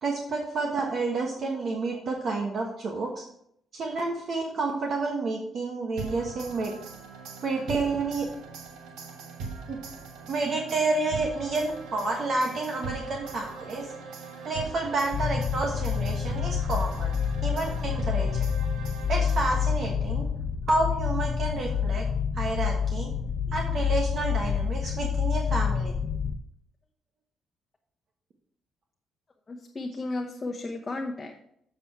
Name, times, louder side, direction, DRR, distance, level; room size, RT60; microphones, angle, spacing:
voice 1, 0.0-3.2 3.7-6.8 7.4-8.3 9.7-9.8 10.3-13.9 14.4-17.1 17.4-18.3 19.1-20.3 20.7-22.1 22.3-23.1 23.5-25.9, right 3 dB, 55° right, 1 dB, 1.3 m, -29 dB
sound 1, 6.0-20.1, right 4 dB, 90° right, 1.3 m, -41 dB
sound 2, 15.1-26.4, left 7 dB, 60° left, 0.8 m, -28 dB
voice 2, 29.5-31.4, left 2 dB, 30° left, 2 dB, 0.9 m, -34 dB
7.2 x 6.9 x 4.6 m, 0.72 s
cardioid pair, 90°, 0 cm